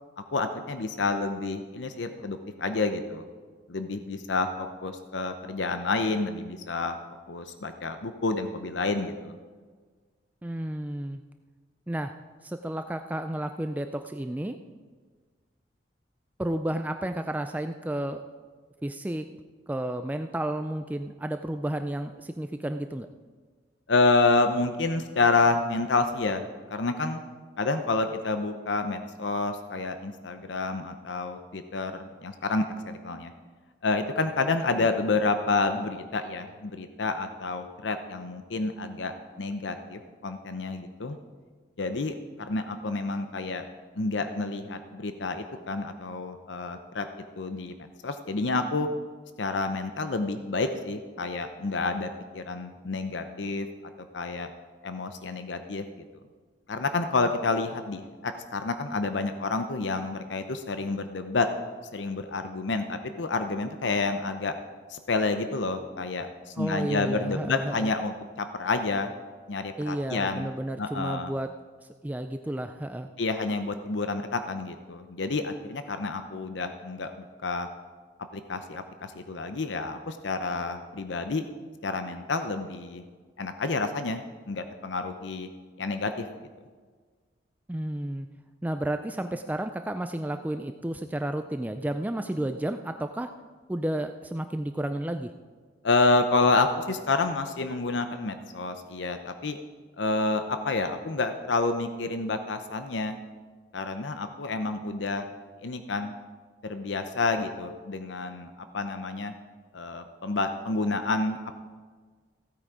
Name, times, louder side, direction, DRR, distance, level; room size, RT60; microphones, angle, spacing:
voice 1, 0.3-3.2 3.7-7.0 7.3-9.3 23.9-26.4 26.7-27.2 27.6-33.3 33.8-41.2 41.8-43.6 44.0-47.1 47.4-47.7 48.0-48.9 49.4-52.1 52.3-53.7 54.1-54.5 54.8-55.9 56.7-61.5 61.9-64.5 64.9-69.1 69.5-70.5 70.8-71.3 73.2-77.7 78.3-81.4 81.8-83.0 83.4-85.5 85.8-86.3 95.8-99.6 100.0-103.2 103.7-105.3 105.6-106.1 106.6-109.3 109.7-111.4, left 3 dB, 80° left, 8 dB, 0.7 m, -29 dB
voice 2, 10.4-11.2 11.9-12.1 12.4-14.6 16.4-18.2 18.8-19.3 19.7-23.1 66.6-67.9 69.8-71.5 71.8-73.1 87.7-88.3 88.6-93.3 93.7-95.3, right 1 dB, 10° right, 7 dB, 0.4 m, -32 dB
15.5 x 8.8 x 4.8 m, 1.5 s
head